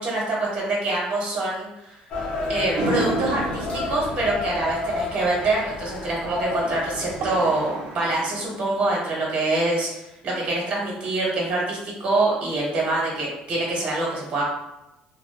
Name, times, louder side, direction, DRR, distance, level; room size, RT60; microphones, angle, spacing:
voice 1, 0.0-2.0 2.5-14.4, right 2 dB, 45° right, -3 dB, 0.9 m, -25 dB
sound 1, 2.1-7.3, left 3 dB, 40° left, 0.8 m, -31 dB
sound 2, 2.8-9.3, right 2 dB, 60° right, 0.5 m, -33 dB
2.8 x 2.0 x 2.3 m, 0.93 s
cardioid pair, 155°, 3 cm